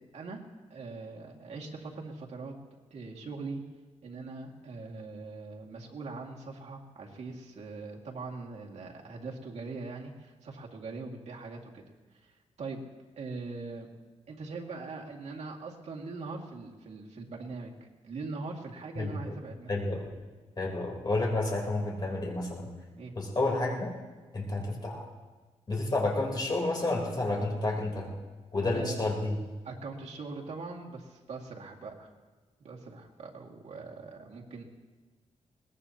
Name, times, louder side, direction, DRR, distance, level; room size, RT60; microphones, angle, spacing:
voice 1, 0.7-2.5 2.9-3.6 4.0-11.7 12.2-12.8 13.2-13.9 14.3-17.7 18.0-19.8 23.0-23.1 28.6-29.0 29.6-32.1 32.6-34.6, right 3 dB, 70° right, -1 dB, 2.2 m, -41 dB
voice 2, 19.0-19.3 19.7-20.1 20.6-22.7 23.2-23.9 24.3-25.1 25.7-28.1 28.5-29.3, left 2 dB, 35° left, -1 dB, 3.7 m, -30 dB
22.0 x 19.5 x 2.9 m, 1.3 s
wide cardioid pair, 120°, 12 cm